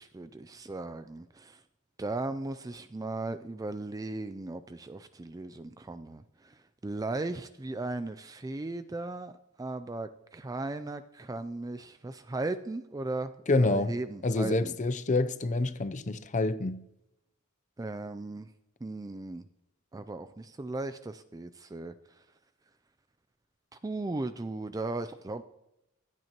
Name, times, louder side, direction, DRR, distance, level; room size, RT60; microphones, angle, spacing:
voice 1, 0.0-1.6 2.0-6.5 6.8-9.3 9.6-14.7 17.8-18.5 18.8-19.4 19.9-21.9 23.8-25.5, right 2 dB, 15° right, 0.3 m, -37 dB
voice 2, 13.5-13.9 14.2-16.8, left 2 dB, 35° left, 0.5 m, -27 dB
26.0 x 9.2 x 3.0 m
head